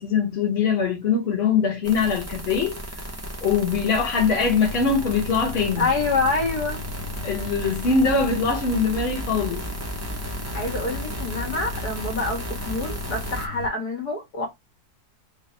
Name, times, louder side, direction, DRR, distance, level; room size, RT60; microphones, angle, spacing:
voice 1, 0.0-2.8 3.4-5.9 7.2-9.6, left 5 dB, 40° left, 1.4 m, -22 dB
sound 1, 1.8-13.5, right 1 dB, 10° right, 0.8 m, -34 dB
sound 2, 4.7-13.7, left 4 dB, 85° right, 1.5 m, -38 dB
voice 2, 5.8-6.8 10.5-14.5, left 3 dB, 75° left, 1.9 m, -26 dB
4.0 x 2.4 x 4.3 m
omnidirectional pair, 1.7 m